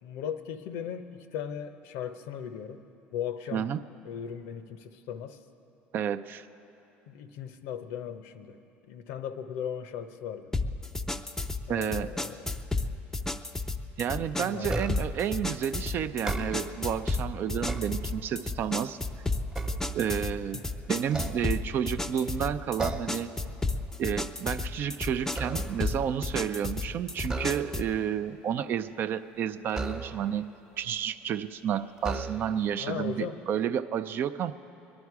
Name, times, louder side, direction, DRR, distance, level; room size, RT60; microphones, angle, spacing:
voice 1, 0.0-2.8 3.1-3.7 4.0-5.4 7.1-8.6 8.9-10.5 11.6-12.5 14.4-14.9 20.5-20.6 32.8-33.4, left 8 dB, 75° left, 10 dB, 0.8 m, -37 dB
voice 2, 5.9-6.5 11.7-12.1 14.0-19.0 19.9-20.6 20.9-23.3 24.0-30.5 30.8-34.5, right 9 dB, 45° right, 12 dB, 0.5 m, -31 dB
sound 1, 10.5-28.0, left 3 dB, 10° left, 0.5 m, -33 dB
sound 2, 14.7-15.2 16.1-16.9 17.4-18.5 19.0-20.5 21.0-22.0 22.8-23.3 23.7-23.9 24.3-26.0 27.2-28.0 29.7-30.5 31.3-31.4 32.0-32.8, right 2 dB, 15° right, 1.0 m, -36 dB
21.5 x 11.5 x 4.8 m, 2.9 s
supercardioid pair, 105°, 5 cm